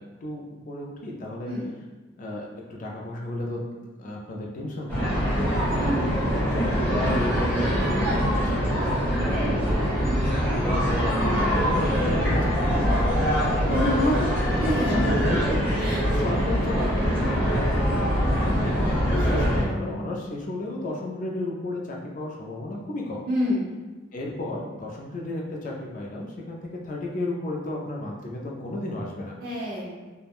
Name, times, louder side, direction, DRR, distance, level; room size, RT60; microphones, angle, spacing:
voice 1, 0.0-1.5 2.2-3.6 4.0-5.6 6.5-9.9 10.5-13.3 13.7-18.0 18.6-23.2 24.1-26.6 26.8-29.4, left 1 dB, 40° left, -2 dB, 0.3 m, -33 dB
sound 1, 4.9-19.6, equal, 10° left, 1.1 m, -23 dB
voice 2, 5.7-6.1 11.1-11.4 14.6-16.0 16.8-16.9 23.3-23.7 29.4-30.0, equal, 50° right, -6 dB, 0.8 m, -29 dB
3.4 x 2.1 x 2.4 m, 1.3 s
head